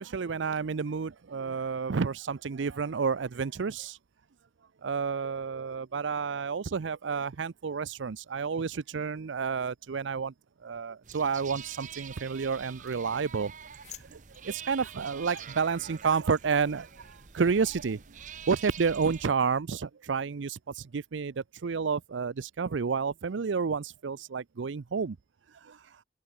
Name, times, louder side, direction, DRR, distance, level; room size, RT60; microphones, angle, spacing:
voice 1, 0.0-4.0 4.8-10.3 10.6-13.5 14.0-18.0 18.5-25.2 25.5-26.0, right 5 dB, 80° right, 0.5 m, -30 dB
sound 1, 11.0-19.3, right 7 dB, 40° right, 0.9 m, -46 dB
sound 2, 11.6-16.1, left 10 dB, 35° left, 3.1 m, -56 dB
open air
head